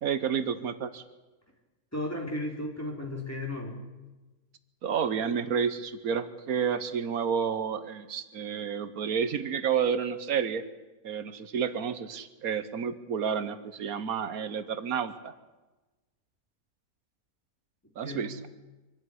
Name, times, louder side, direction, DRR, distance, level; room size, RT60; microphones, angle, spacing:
voice 1, 0.0-1.0 4.8-10.6 11.0-15.3 18.0-18.4, right 7 dB, 85° right, 12 dB, 1.5 m, -30 dB
voice 2, 1.9-3.8 18.0-18.5, left 1 dB, 10° left, 0 dB, 3.9 m, -35 dB
25.0 x 12.5 x 9.9 m, 1.1 s
omnidirectional pair, 1.5 m